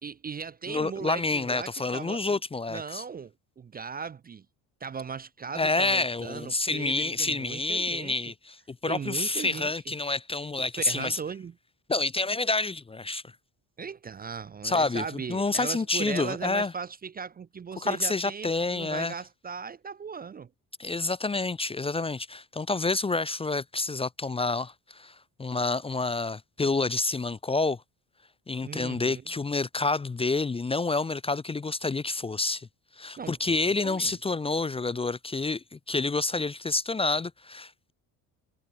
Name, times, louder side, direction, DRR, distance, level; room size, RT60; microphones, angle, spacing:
voice 1, 0.0-2.4 2.7-4.5 4.8-8.1 8.9-9.9 10.7-11.5 13.8-20.5 28.6-29.2 33.2-34.2, right 6 dB, 25° right, 0.6 m, -38 dB
voice 2, 0.7-3.0 5.6-11.2 11.9-13.2 14.6-16.7 17.8-19.1 20.8-27.8 28.5-32.7 33.0-37.9, left 3 dB, 15° left, 0.6 m, -28 dB
cardioid pair, 110°, 37 cm